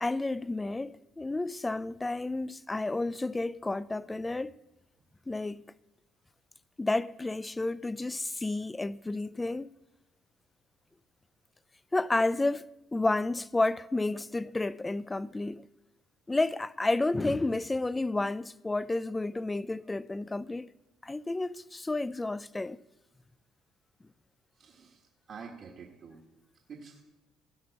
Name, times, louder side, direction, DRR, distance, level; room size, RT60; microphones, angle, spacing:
voice 1, 0.0-4.5 5.3-5.7 6.8-9.7 11.9-15.6 16.3-20.7 21.0-22.8, left 2 dB, 15° left, 0.4 m, -31 dB
voice 2, 24.6-26.2 26.7-27.0, right 5 dB, 45° right, 1.6 m, -48 dB
17.0 x 6.0 x 5.8 m
cardioid pair, 105°, 0 cm